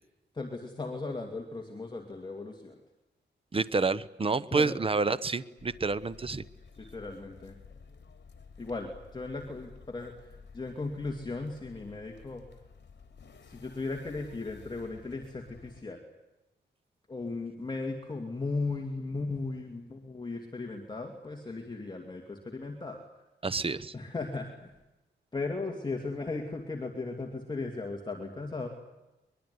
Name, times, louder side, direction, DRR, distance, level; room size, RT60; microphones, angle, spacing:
voice 1, 0.3-2.8 4.5-4.8 6.8-7.5 8.6-12.4 13.4-16.0 17.1-23.0 23.9-24.7 25.3-28.7, left 3 dB, 25° left, 2 dB, 2.5 m, -37 dB
voice 2, 3.5-6.4 23.4-23.9, right 4 dB, 30° right, 16 dB, 1.0 m, -29 dB
sound 1, 5.6-15.8, left 5 dB, 65° left, 3.2 m, -53 dB
23.0 x 22.0 x 9.7 m, 1.0 s
wide cardioid pair, 125°, 19 cm